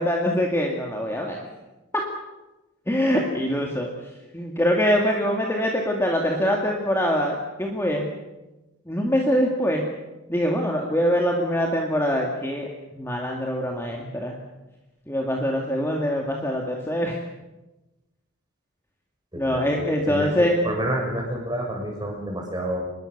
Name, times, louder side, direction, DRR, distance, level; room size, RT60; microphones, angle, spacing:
voice 1, 0.0-1.4 1.9-2.0 2.9-3.9 4.3-8.1 8.9-9.8 10.3-14.4 15.1-17.2 19.4-20.5, equal, 10° left, 0 dB, 2.4 m, -24 dB
voice 2, 19.3-22.8, right 1 dB, 20° right, 0 dB, 6.9 m, -29 dB
26.0 x 21.5 x 6.8 m, 1.1 s
head